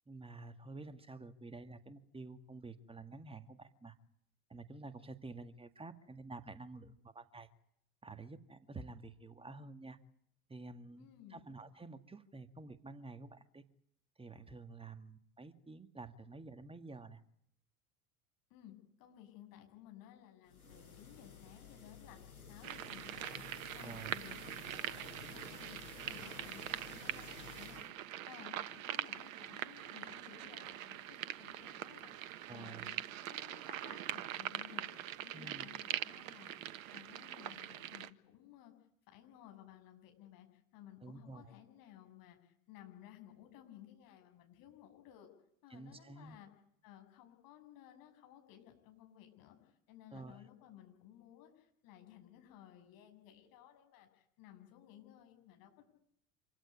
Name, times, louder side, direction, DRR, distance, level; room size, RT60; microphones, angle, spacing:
voice 1, 0.1-4.0 4.5-7.5 8.0-10.0 10.5-13.6 14.2-17.2 23.8-24.2 32.5-32.9 35.3-35.7 41.0-41.5 45.7-46.4 50.1-50.4, right 3 dB, 10° right, 10 dB, 2.0 m, -50 dB
voice 2, 11.0-11.4 18.5-22.2 22.5-38.7 39.1-45.3 45.6-46.5 46.8-55.8, left 12 dB, 50° left, 5 dB, 7.7 m, -57 dB
Dishwasher water, 20.5-27.9, left 5 dB, 85° left, 4.9 m, -53 dB
sound 1, 22.6-38.1, right 12 dB, 65° right, 1.4 m, -43 dB
27.0 x 16.5 x 9.9 m, 0.71 s
figure-of-eight pair, 80°, 43 cm